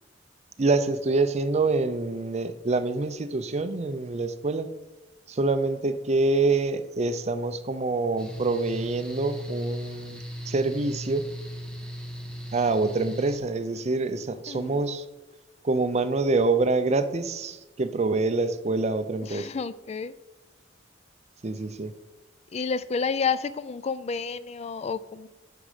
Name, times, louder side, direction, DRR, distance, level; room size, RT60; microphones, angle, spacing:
voice 1, 0.6-4.7 5.3-11.3 12.5-15.0 15.6-19.5 21.4-21.9, right 3 dB, 40° right, 11 dB, 0.5 m, -26 dB
Mechanical fan, 8.2-13.4, equal, 5° left, 1.2 m, -37 dB
voice 2, 14.5-14.8 19.2-20.1 22.5-25.3, left 5 dB, 35° left, 15 dB, 0.4 m, -30 dB
9.4 x 6.2 x 5.0 m, 1.1 s
head